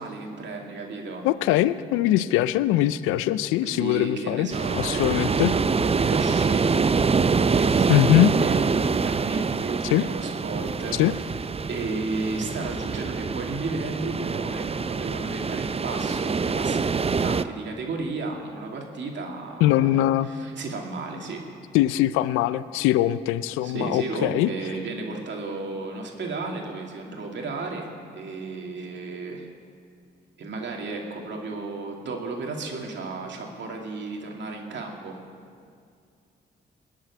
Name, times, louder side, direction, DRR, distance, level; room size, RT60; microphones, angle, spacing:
voice 1, 0.0-1.2 3.6-6.8 7.5-11.3 11.7-21.4 23.6-29.4 30.4-35.2, right 3 dB, 65° right, 1 dB, 2.6 m, -33 dB
voice 2, 1.2-4.5 4.7-5.5 7.9-8.3 9.9-10.0 10.9-11.1 19.6-20.3 21.7-24.5, left 14 dB, 90° left, 16 dB, 0.5 m, -21 dB
sound 1, 4.5-17.4, right 5 dB, 30° right, 0.6 m, -25 dB
19.5 x 7.6 x 9.6 m, 2.2 s
supercardioid pair, 50°, 20 cm